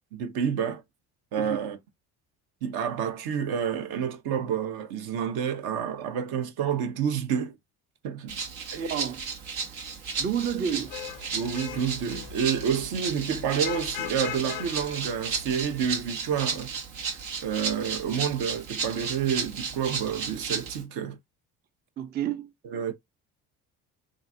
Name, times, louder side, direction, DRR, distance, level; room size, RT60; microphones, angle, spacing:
voice 1, 0.1-0.8 1.3-1.8 2.6-7.5 8.0-8.3 8.7-8.9 11.3-16.7 17.1-21.2 22.6-22.9, right 8 dB, 65° right, 0.8 m, -29 dB
Rattle (instrument), 8.3-20.8, right 5 dB, 85° right, 1.1 m, -34 dB
voice 2, 8.7-9.2 10.2-10.9 22.0-22.5, right 8 dB, 25° right, 0.3 m, -30 dB
Vehicle horn car horn honking / Traffic noise roadway noise, 10.7-16.0, left 9 dB, 85° left, 0.5 m, -41 dB
3.0 x 2.5 x 2.6 m
hypercardioid pair, 65°, 41 cm